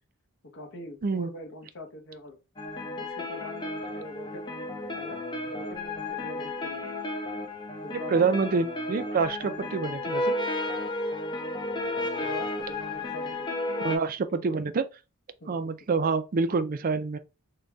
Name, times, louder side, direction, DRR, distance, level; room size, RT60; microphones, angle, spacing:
voice 1, 0.5-2.4 2.9-5.2 5.5-7.0 7.8-8.3 11.9-13.5 13.9-14.6 15.4-15.7, left 1 dB, 55° left, 0.9 m, -43 dB
sound 1, 2.6-14.0, left 2 dB, 20° left, 0.5 m, -33 dB
voice 2, 7.9-10.3 13.8-14.8 15.5-17.2, right 4 dB, 40° right, 0.4 m, -27 dB
3.8 x 2.2 x 3.4 m
head